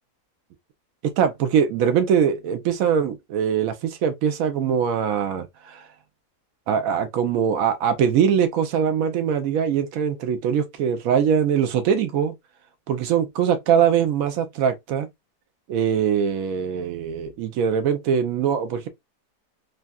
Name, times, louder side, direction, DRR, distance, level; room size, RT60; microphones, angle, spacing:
voice 1, 1.0-5.8 6.7-12.3 12.9-15.1 15.7-18.9, right 8 dB, 65° right, 1.0 m, -22 dB
3.4 x 2.7 x 2.3 m
omnidirectional pair, 1.7 m